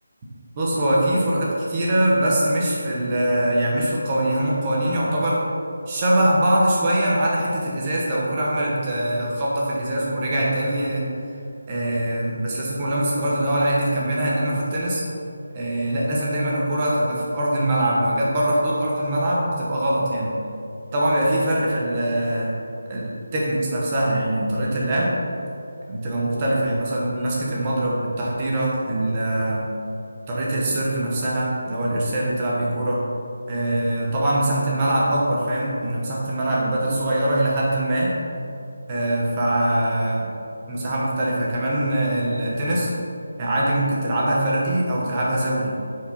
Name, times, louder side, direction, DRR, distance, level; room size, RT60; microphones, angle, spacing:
voice 1, 0.6-5.5 5.9-11.0 11.7-15.0 15.5-20.3 20.9-22.5 22.9-25.2 25.9-29.7 30.3-33.0 33.5-38.1 38.9-40.3 40.7-42.9 43.4-45.7, right 1 dB, 15° right, -5 dB, 1.0 m, -22 dB
9.0 x 4.8 x 4.3 m, 2.6 s
figure-of-eight pair, 175°, 0 cm